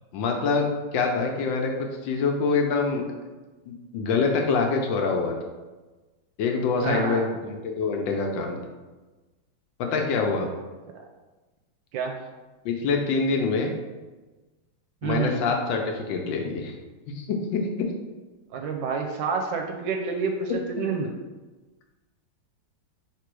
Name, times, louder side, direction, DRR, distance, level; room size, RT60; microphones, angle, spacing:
voice 1, 0.1-3.1 3.7-5.4 6.4-8.6 9.8-10.5 12.6-13.7 15.0-16.7 17.2-17.9, left 4 dB, 75° left, 2 dB, 1.3 m, -25 dB
voice 2, 6.8-7.3 11.9-12.2 15.0-15.4 18.5-21.1, right 5 dB, 75° right, 3 dB, 1.2 m, -28 dB
3.7 x 3.0 x 4.5 m, 1.2 s
omnidirectional pair, 2.2 m